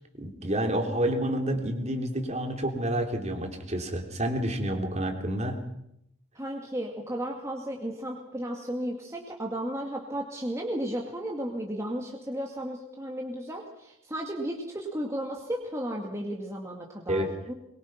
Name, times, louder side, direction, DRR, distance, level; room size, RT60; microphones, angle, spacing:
voice 1, 0.2-5.6 17.1-17.3, right 1 dB, 30° right, 4 dB, 3.1 m, -29 dB
voice 2, 6.4-17.5, right 1 dB, 15° right, 0 dB, 2.3 m, -34 dB
23.0 x 22.5 x 5.9 m, 0.79 s
head